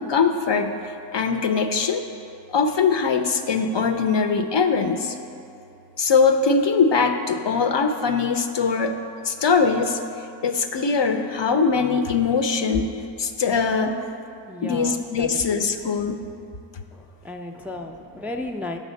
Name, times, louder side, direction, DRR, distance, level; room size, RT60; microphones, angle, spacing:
voice 1, 0.0-2.0 2.5-5.2 6.0-9.0 9.3-10.0 10.4-14.0 14.6-16.3, left 5 dB, 65° left, 6 dB, 0.6 m, -22 dB
voice 2, 14.5-15.4 16.9-18.8, left 2 dB, 5° right, 4 dB, 0.3 m, -34 dB
8.4 x 3.3 x 6.4 m, 2.7 s
cardioid pair, 40°, 47 cm